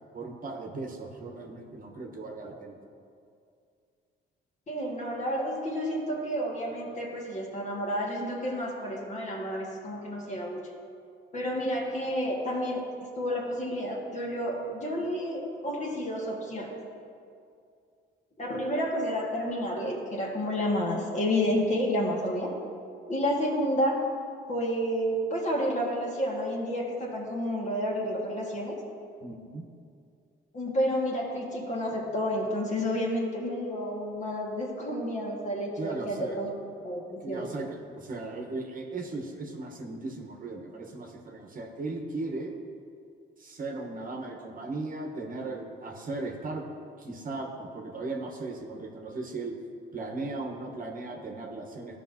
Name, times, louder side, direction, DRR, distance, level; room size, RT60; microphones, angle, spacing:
voice 1, 0.1-2.8 29.2-29.6 35.8-36.4 37.2-42.6 43.4-46.6 47.0-49.5 49.9-52.0, right 3 dB, 45° right, 1 dB, 1.1 m, -37 dB
voice 2, 4.7-10.7 11.3-12.9 13.2-16.7 18.4-22.5 23.1-24.0 24.5-28.8 30.5-36.5 36.8-37.5, equal, 35° left, -2 dB, 1.7 m, -30 dB
13.5 x 5.3 x 2.8 m, 2.4 s
cardioid pair, 90°, 20 cm